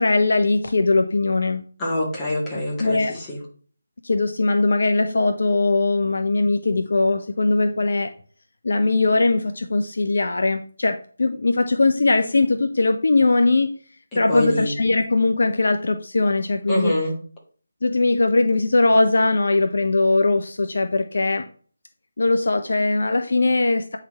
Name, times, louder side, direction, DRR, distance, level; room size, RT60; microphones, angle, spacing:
voice 1, 0.0-1.6 2.8-3.2 4.0-8.1 8.6-13.7 14.2-16.9 17.8-21.5 22.2-24.0, left 3 dB, 55° left, 7 dB, 0.6 m, -20 dB
voice 2, 1.8-3.4 14.1-14.8 16.7-17.1, left 1 dB, 15° left, -4 dB, 2.1 m, -25 dB
8.6 x 4.0 x 4.2 m, 0.43 s
figure-of-eight pair, 155°, 0 cm